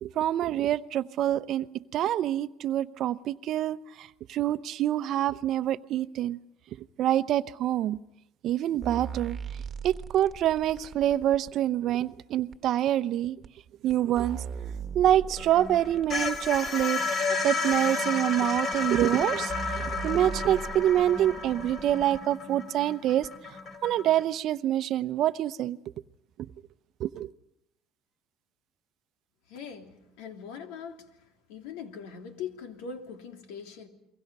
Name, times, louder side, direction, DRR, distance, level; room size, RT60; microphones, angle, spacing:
voice 1, 0.0-6.4 7.0-8.0 8.4-9.4 9.8-13.4 13.8-14.4 14.9-23.3 23.8-25.8 27.0-27.3, right 12 dB, 55° right, 0.8 m, -26 dB
sound 1, 8.8-11.5 12.5-12.6 13.4-13.5 13.9-16.9 17.7-17.8 18.7-18.8 19.2-19.3 19.5-22.2 23.2-23.3, right 6 dB, 35° right, 1.5 m, -39 dB
sound 2, 15.4-24.2, left 4 dB, 40° left, 4.2 m, -32 dB
voice 2, 29.5-31.1 31.5-33.9, left 6 dB, 85° left, 3.1 m, -41 dB
29.5 x 23.0 x 5.5 m
supercardioid pair, 105°, 0 cm